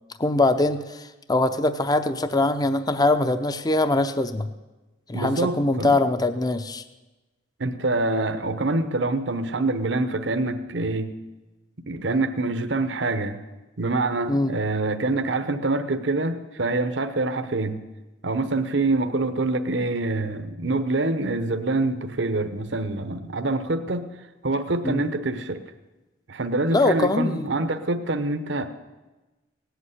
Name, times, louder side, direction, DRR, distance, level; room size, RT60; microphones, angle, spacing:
voice 1, 0.2-4.5 5.1-6.8 14.3-14.5 24.8-25.0 26.7-27.4, left 2 dB, 20° left, 10 dB, 0.6 m, -22 dB
voice 2, 5.1-6.0 7.6-11.1 11.9-13.4 13.8-17.8 18.2-24.1 24.4-25.6 26.3-28.7, right 2 dB, 65° right, 8 dB, 0.9 m, -25 dB
17.5 x 8.2 x 9.8 m, 1.1 s
head